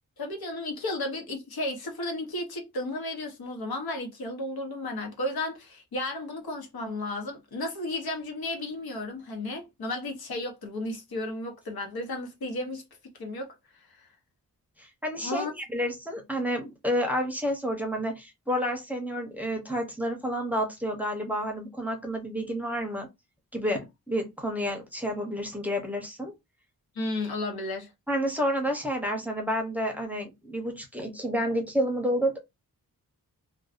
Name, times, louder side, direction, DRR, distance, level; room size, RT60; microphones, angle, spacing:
voice 1, 0.2-12.8 13.2-13.5 13.9-14.1 15.2-15.5 26.9-27.9, left 2 dB, 80° left, 0.9 m, -33 dB
voice 2, 14.8-23.1 23.5-26.3 28.1-32.4, equal, 5° right, 0.7 m, -30 dB
2.5 x 2.2 x 2.4 m
wide cardioid pair, 120°, 36 cm